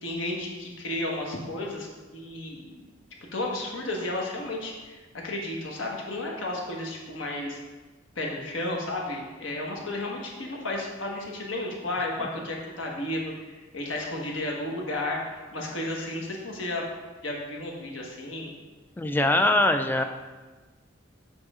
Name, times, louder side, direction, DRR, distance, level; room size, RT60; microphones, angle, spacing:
voice 1, 0.0-2.8 3.3-7.6 8.1-16.8 17.2-18.5 19.1-19.5 19.9-20.1, left 1 dB, 75° left, -1 dB, 1.5 m, -33 dB
voice 2, 19.0-20.0, left 1 dB, 10° left, 8 dB, 0.3 m, -22 dB
7.8 x 5.4 x 3.7 m, 1.3 s
head